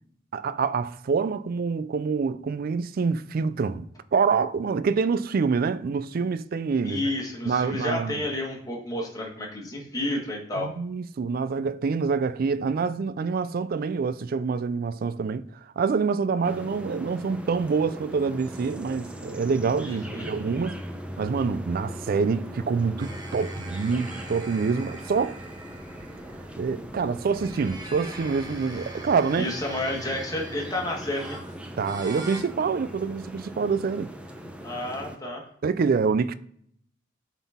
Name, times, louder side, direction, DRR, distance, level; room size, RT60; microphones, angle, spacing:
voice 1, 0.3-7.0 7.5-8.2 10.6-15.5 15.8-20.8 21.2-25.4 26.6-29.5 31.8-34.1 35.6-36.3, right 5 dB, 50° right, 0.4 m, -26 dB
voice 2, 6.8-10.7 19.9-20.3 29.4-31.4 34.6-35.5, left 1 dB, 20° left, 1.5 m, -31 dB
sound 1, 16.4-35.2, equal, 5° right, 0.6 m, -40 dB
sound 2, 23.0-26.5 27.2-32.4, right 2 dB, 20° right, 1.2 m, -43 dB
8.1 x 4.0 x 3.5 m
head